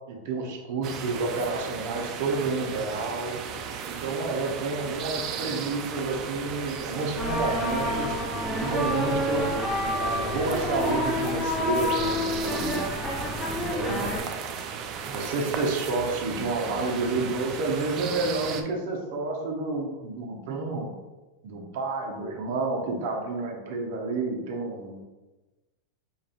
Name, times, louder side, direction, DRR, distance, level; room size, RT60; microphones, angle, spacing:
voice 1, 0.1-3.4 3.9-8.2 8.6-9.5 9.9-12.9 13.6-14.0 15.1-20.9 21.4-25.0, right 3 dB, 65° right, 1 dB, 0.9 m, -30 dB
sound 1, 0.8-18.6, right 6 dB, 45° right, 0.4 m, -36 dB
sound 2, 7.2-14.2, left 1 dB, 20° left, 0.8 m, -29 dB
5.2 x 2.5 x 2.5 m, 1.1 s
hypercardioid pair, 105°, 0 cm